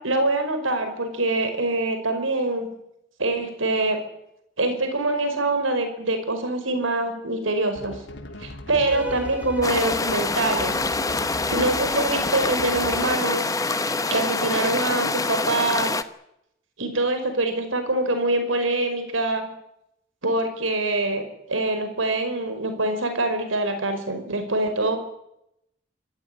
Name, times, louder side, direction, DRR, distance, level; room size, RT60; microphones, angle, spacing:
voice 1, 0.0-2.7 3.2-4.0 4.6-7.9 8.4-10.8 11.5-13.5 14.1-15.9 16.8-19.5 20.2-25.0, right 2 dB, 85° right, 8 dB, 5.3 m, -24 dB
sound 1, 7.8-13.3, left 1 dB, 60° left, 2.9 m, -39 dB
Bowed string instrument, 8.8-15.6, left 1 dB, 10° right, 4.4 m, -37 dB
sound 2, 9.6-16.0, left 3 dB, 15° left, 1.0 m, -26 dB
26.0 x 15.5 x 9.9 m, 0.79 s
head